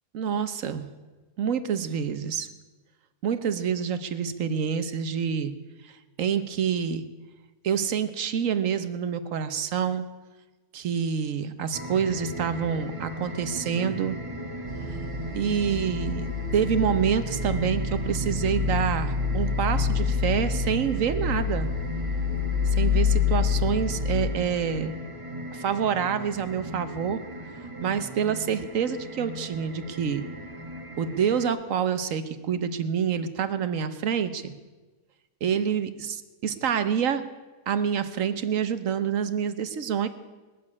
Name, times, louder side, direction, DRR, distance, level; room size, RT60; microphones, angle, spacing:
voice 1, 0.1-0.9 1.4-2.5 3.2-5.5 6.2-7.0 7.6-10.1 10.7-14.2 15.3-21.7 22.8-25.0 25.5-27.2 27.8-30.2 31.0-34.5 35.4-37.2 37.7-40.1, right 7 dB, 60° right, 11 dB, 1.2 m, -27 dB
sound 1, 11.7-31.5, equal, 25° right, 1.0 m, -38 dB
sound 2, 14.7-24.3, left 5 dB, 40° right, 1.4 m, -27 dB
20.0 x 7.5 x 9.7 m, 1.2 s
omnidirectional pair, 1.7 m